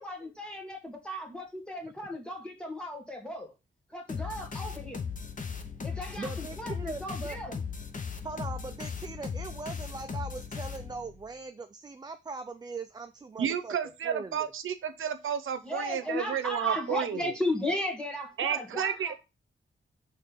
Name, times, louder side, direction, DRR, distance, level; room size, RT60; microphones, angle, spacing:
voice 1, 0.0-3.5 3.9-5.0 5.8-7.6 15.6-19.1, left 1 dB, 5° left, 1.6 m, -35 dB
sound 1, 4.1-11.2, left 6 dB, 40° left, 0.8 m, -37 dB
voice 2, 6.2-7.4 8.2-13.8 14.0-14.5, right 4 dB, 20° right, 0.4 m, -40 dB
voice 3, 13.4-17.2 18.4-19.1, right 8 dB, 85° right, 0.8 m, -31 dB
6.4 x 3.3 x 5.2 m
wide cardioid pair, 150°, 20 cm